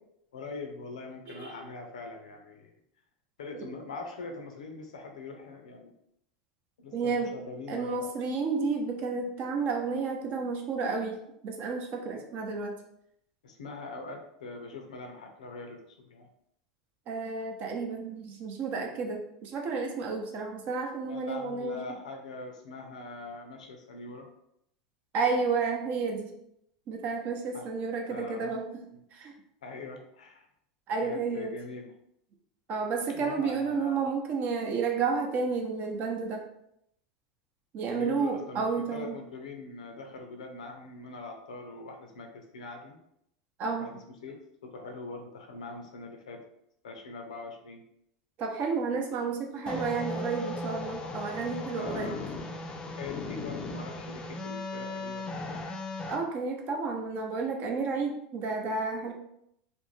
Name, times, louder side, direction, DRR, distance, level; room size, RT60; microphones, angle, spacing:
voice 1, 0.3-2.7 3.4-5.9 6.8-8.1 13.4-16.3 21.1-24.3 27.5-27.7 28.1-28.6 28.9-29.0 29.6-30.5 31.0-31.9 33.1-34.0 37.9-43.0 43.8-46.4 46.8-47.8 51.8-52.2 52.9-55.6, left 3 dB, 90° left, 3 dB, 0.5 m, -42 dB
voice 2, 6.9-7.3 7.7-11.2 11.4-12.7 17.1-21.8 25.1-26.3 26.9-28.7 29.1-29.3 30.9-31.5 32.7-36.4 37.7-39.2 43.6-43.9 48.4-52.2 56.1-59.1, right 4 dB, 45° right, 2 dB, 0.6 m, -31 dB
sound 1, 49.7-56.2, left 2 dB, 25° left, 0.4 m, -37 dB
2.5 x 2.1 x 3.1 m, 0.75 s
hypercardioid pair, 105°, 4 cm